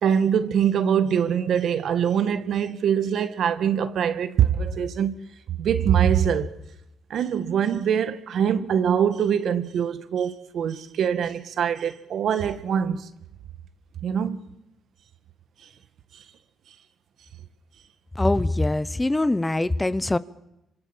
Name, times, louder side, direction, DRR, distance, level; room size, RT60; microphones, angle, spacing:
voice 1, 0.0-6.5 7.1-13.1 14.0-14.5, right 8 dB, 65° right, 1.8 m, -23 dB
voice 2, 18.1-20.2, left 2 dB, 15° left, 1.0 m, -23 dB
27.0 x 26.0 x 7.5 m
cardioid pair, 90°, 0 cm